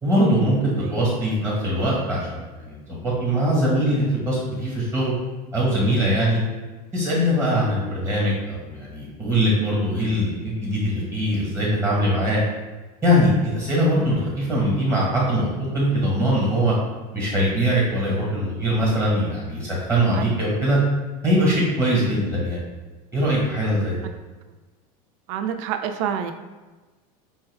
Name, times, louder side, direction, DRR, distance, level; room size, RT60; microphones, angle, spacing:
voice 1, 0.0-5.1 5.5-6.4 6.9-12.4 13.0-16.7 17.1-20.8 21.2-22.6 23.1-24.0, equal, 15° right, -6 dB, 1.3 m, -22 dB
voice 2, 25.3-26.3, right 8 dB, 60° right, 8 dB, 0.4 m, -28 dB
5.2 x 2.3 x 3.3 m, 1.3 s
supercardioid pair, 155°, 19 cm